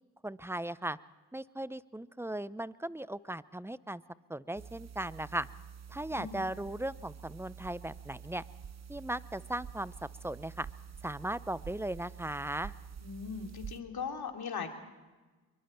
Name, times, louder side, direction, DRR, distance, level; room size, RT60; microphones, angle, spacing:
voice 1, 0.2-1.0 1.3-4.0 4.3-5.5 5.9-8.4 8.9-9.9 10.2-10.7 11.0-12.7, right 1 dB, 5° right, 18 dB, 0.7 m, -37 dB
sound 1, 4.6-13.8, right 7 dB, 40° right, 0.9 m, -48 dB
voice 2, 6.1-6.4 13.0-14.7, left 6 dB, 60° left, 3 dB, 3.0 m, -39 dB
25.0 x 23.5 x 4.4 m, 1.3 s
supercardioid pair, 50°, 43 cm